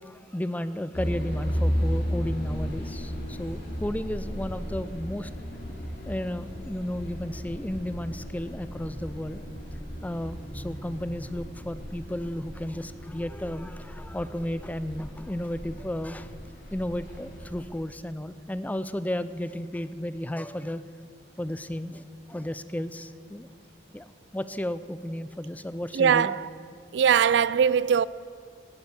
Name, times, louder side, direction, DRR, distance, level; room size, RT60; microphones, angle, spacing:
voice 1, 0.0-5.3 6.1-9.4 10.0-16.3 16.7-20.8 21.4-22.0 22.3-23.5 23.9-24.1 24.3-26.3, left 1 dB, 10° left, 0.5 m, -33 dB
sound 1, 0.9-17.5, equal, 80° left, 5.1 m, -34 dB
voice 2, 25.9-26.5 26.9-28.1, right 7 dB, 70° right, 0.3 m, -21 dB
17.5 x 9.8 x 8.2 m
head